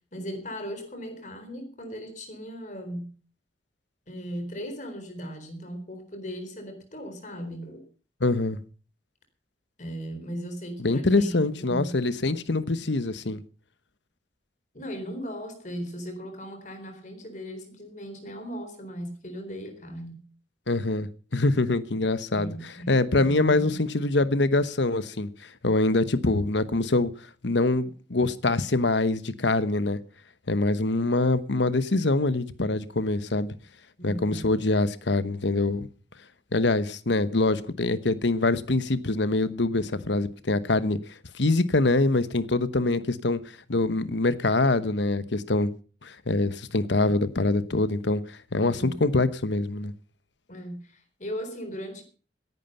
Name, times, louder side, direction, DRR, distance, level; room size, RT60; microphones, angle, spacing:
voice 1, 0.1-3.1 4.1-7.8 9.8-12.0 14.7-20.3 22.3-22.9 23.2-23.8 34.0-34.5 48.6-49.0 50.5-52.0, equal, 40° left, 4.2 m, -37 dB
voice 2, 8.2-8.6 10.8-13.4 20.7-22.5 22.9-25.3 25.6-27.1 27.4-30.0 30.5-33.5 34.0-35.9 36.5-41.0 41.3-43.4 43.7-45.7 46.0-49.9, left 2 dB, 75° left, 1.1 m, -24 dB
17.0 x 11.0 x 5.6 m
head